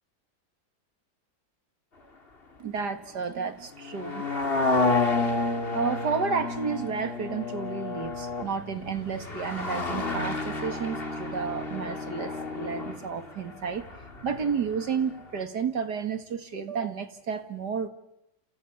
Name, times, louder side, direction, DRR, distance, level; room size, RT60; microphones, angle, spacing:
voice 1, 2.6-4.3 5.7-13.9 14.2-17.9, right 6 dB, 60° right, 9 dB, 2.4 m, -31 dB
sound 1, 3.8-14.9 15.2-15.3, left 3 dB, 30° left, 2.6 m, -30 dB
29.0 x 28.5 x 7.0 m, 0.88 s
omnidirectional pair, 2.1 m